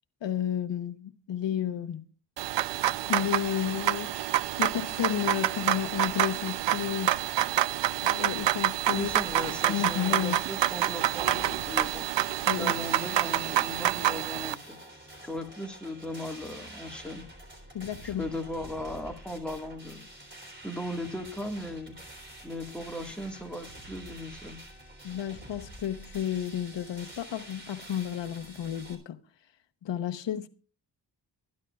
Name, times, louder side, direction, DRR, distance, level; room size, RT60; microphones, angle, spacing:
voice 1, 0.2-2.0 3.1-4.1 4.6-7.2 8.0-9.1 9.7-10.4 12.5-12.7 17.7-18.3 25.0-29.2 29.8-30.5, left 10 dB, 80° left, 0.9 m, -32 dB
sound 1, 2.4-14.5, right 13 dB, 75° right, 0.5 m, -28 dB
voice 2, 8.9-12.1 12.5-14.8 15.2-17.3 18.0-20.1 20.6-22.0 22.4-24.6, left 1 dB, ahead, 1.7 m, -37 dB
sound 2, 9.0-29.0, right 1 dB, 25° right, 3.5 m, -47 dB
24.5 x 10.5 x 2.4 m
wide cardioid pair, 140°, 43 cm